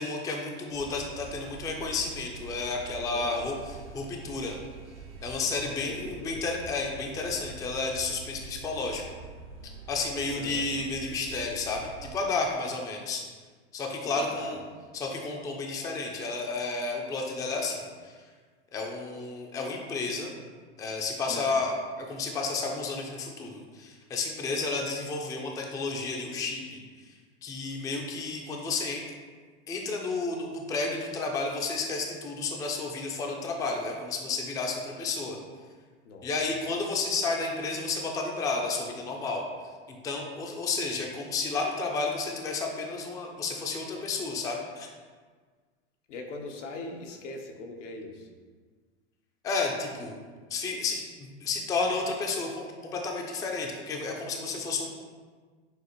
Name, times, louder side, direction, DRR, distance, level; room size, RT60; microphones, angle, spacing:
voice 1, 0.0-3.5 3.9-4.6 5.2-9.0 9.9-13.2 13.7-14.6 14.9-18.1 18.7-20.3 20.8-26.8 27.4-29.0 29.7-35.4 36.2-39.4 39.9-44.9 49.4-50.2 50.5-54.9, left 3 dB, 10° left, 1 dB, 0.3 m, -31 dB
sound 1, 0.7-12.1, right 4 dB, 75° right, 1.3 m, -45 dB
voice 2, 3.1-3.4 5.8-6.5 10.3-10.7 14.2-14.6 21.2-21.5 36.0-36.3 46.1-48.3, left 3 dB, 90° left, 2 dB, 0.8 m, -41 dB
6.3 x 2.4 x 3.0 m, 1.5 s
hypercardioid pair, 115°, 35 cm